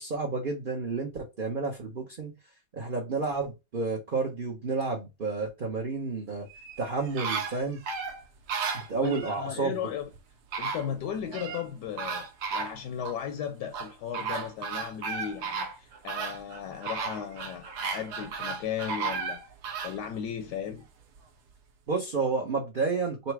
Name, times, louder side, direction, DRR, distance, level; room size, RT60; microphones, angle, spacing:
voice 1, 0.0-2.3 2.7-6.5 6.8-7.8 8.7-9.7 21.9-23.3, right 4 dB, 45° right, 0.7 m, -30 dB
sound 1, 6.5-9.4 10.1-10.2 10.5-11.6 12.0-13.2 13.7-20.0 20.5-20.6, right 5 dB, 70° right, 1.2 m, -34 dB
voice 2, 9.0-10.1 10.6-19.4 19.8-20.8, left 8 dB, 80° left, 1.2 m, -36 dB
4.0 x 2.2 x 4.5 m
omnidirectional pair, 1.9 m